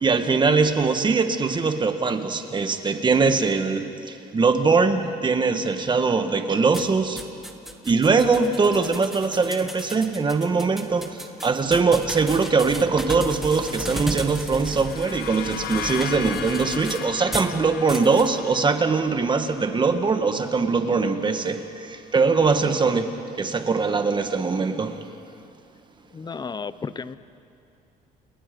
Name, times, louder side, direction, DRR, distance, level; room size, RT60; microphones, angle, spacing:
voice 1, 0.0-7.2 7.8-25.1, right 4 dB, 25° right, 8 dB, 1.7 m, -22 dB
sound 1, 6.7-17.5 17.9-18.3, equal, ahead, 1.7 m, -35 dB
sound 2, 14.5-22.1, left 10 dB, 65° left, 1.3 m, -37 dB
voice 2, 26.1-27.2, left 5 dB, 25° left, 15 dB, 0.8 m, -33 dB
29.5 x 29.5 x 5.4 m, 2.6 s
cardioid pair, 110°, 17 cm